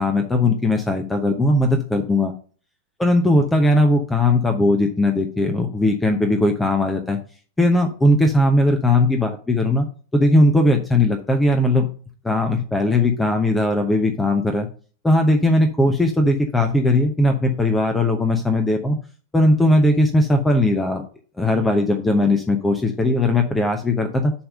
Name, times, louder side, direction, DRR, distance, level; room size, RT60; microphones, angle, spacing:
voice 1, 0.0-2.3 3.0-7.2 7.6-9.9 10.1-11.9 12.2-14.7 15.0-19.0 19.3-21.0 21.4-24.3, left 1 dB, 10° left, 5 dB, 0.8 m, -18 dB
7.1 x 3.5 x 6.3 m, 0.40 s
figure-of-eight pair, 90°, 0 cm